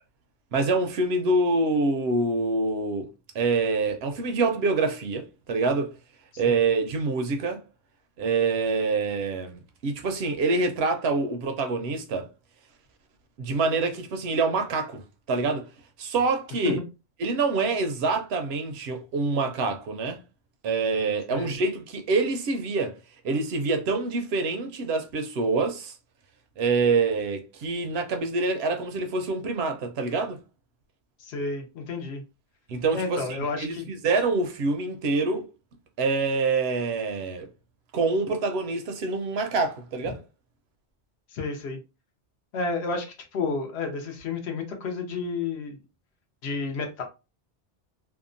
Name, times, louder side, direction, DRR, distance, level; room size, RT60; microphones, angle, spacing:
voice 1, 0.5-3.1 3.3-5.9 6.4-7.6 8.2-12.3 13.4-15.0 15.3-15.7 16.0-16.8 17.2-20.2 20.6-23.0 23.2-25.9 26.6-30.4 32.7-35.5 36.0-37.5 37.9-40.2, right 3 dB, 70° right, 0.8 m, -26 dB
voice 2, 31.2-32.2 32.9-33.9 41.3-41.8 42.5-43.1 43.3-45.8 46.4-47.0, left 4 dB, 70° left, 0.9 m, -31 dB
2.8 x 2.1 x 2.5 m
omnidirectional pair, 1.2 m